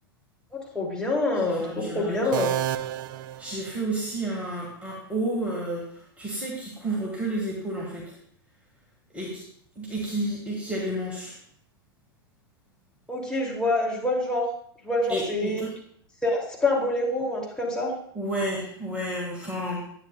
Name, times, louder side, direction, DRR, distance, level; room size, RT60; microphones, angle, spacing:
voice 1, 0.5-2.5 13.1-14.4 14.8-15.6 16.2-17.9, left 2 dB, 5° left, -4 dB, 2.5 m, -26 dB
voice 2, 1.4-2.2 3.4-8.2 9.1-9.4 9.8-11.4 15.1-15.7 18.1-19.8, right 1 dB, 10° right, -3 dB, 1.8 m, -31 dB
sound 1, 2.3-4.2, right 12 dB, 55° right, 0.4 m, -31 dB
10.5 x 9.0 x 2.3 m, 0.65 s
figure-of-eight pair, 95°, 13 cm